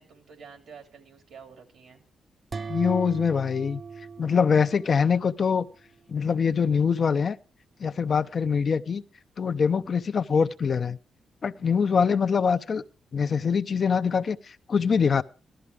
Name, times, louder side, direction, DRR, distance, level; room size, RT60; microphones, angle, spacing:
voice 1, 0.0-2.0, right 6 dB, 80° right, 2.8 m, -49 dB
sound 1, 2.5-5.3, right 5 dB, 40° right, 0.6 m, -38 dB
voice 2, 2.7-3.8 4.2-5.7 6.1-7.4 7.8-9.0 9.4-11.0 11.4-12.8 13.1-15.2, left 6 dB, 50° left, 0.5 m, -24 dB
15.5 x 12.5 x 3.5 m
cardioid pair, 90°, 0 cm